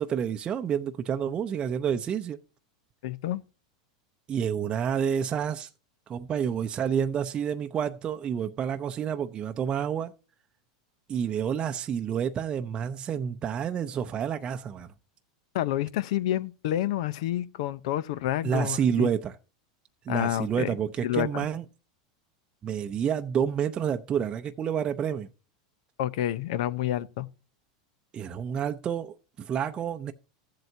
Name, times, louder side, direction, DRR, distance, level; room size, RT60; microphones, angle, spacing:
voice 1, 0.0-2.4 4.3-5.7 6.1-10.1 11.1-14.9 18.4-19.4 20.1-21.6 22.6-25.3 28.1-30.1, right 8 dB, 30° right, 0.6 m, -29 dB
voice 2, 3.0-3.4 15.5-19.1 20.1-20.7 21.0-21.5 26.0-27.3, left 12 dB, 70° left, 0.7 m, -29 dB
14.5 x 7.8 x 2.7 m
supercardioid pair, 125°, 3 cm